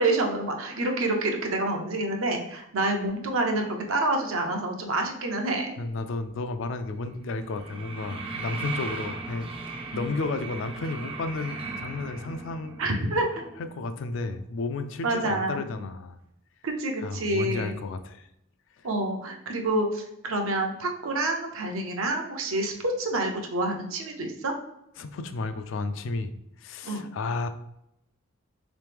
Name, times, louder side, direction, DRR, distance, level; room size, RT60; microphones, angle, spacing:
voice 1, 0.0-5.7 9.9-10.0 12.8-13.4 15.0-15.6 16.6-17.8 18.8-24.5 26.8-27.0, right 2 dB, 75° right, 3 dB, 0.6 m, -28 dB
voice 2, 5.8-12.8 13.7-16.2 17.0-18.3 25.0-26.3 26.6-27.5, left 3 dB, 60° left, 9 dB, 0.3 m, -32 dB
sound 1, 6.8-15.2 15.4-15.5, right 3 dB, 25° right, 0.3 m, -38 dB
3.7 x 3.1 x 3.3 m, 0.81 s
head